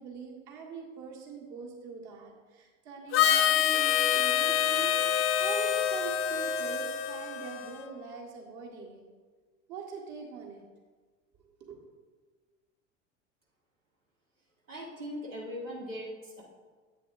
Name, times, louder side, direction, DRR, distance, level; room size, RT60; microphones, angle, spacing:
voice 1, 0.0-9.0 9.7-10.6 11.4-11.9, right 5 dB, 50° right, -1 dB, 1.7 m, -43 dB
Harmonica, 3.1-7.9, left 9 dB, 35° left, 0.6 m, -26 dB
voice 2, 14.7-16.4, equal, 85° right, -4 dB, 1.5 m, -40 dB
10.0 x 7.9 x 2.6 m, 1.4 s
figure-of-eight pair, 75°, 38 cm